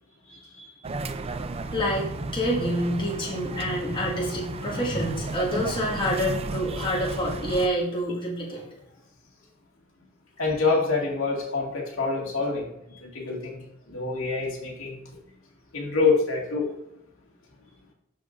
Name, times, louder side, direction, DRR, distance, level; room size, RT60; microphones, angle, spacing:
voice 1, 0.3-0.7 10.4-15.0 15.7-16.7, left 4 dB, 80° left, -2 dB, 2.2 m, -26 dB
sound 1, 0.8-7.7, right 2 dB, 30° right, 0.4 m, -33 dB
voice 2, 1.3-2.1 2.3-8.7, equal, 25° left, -5 dB, 1.9 m, -27 dB
12.5 x 5.0 x 2.6 m, 0.84 s
head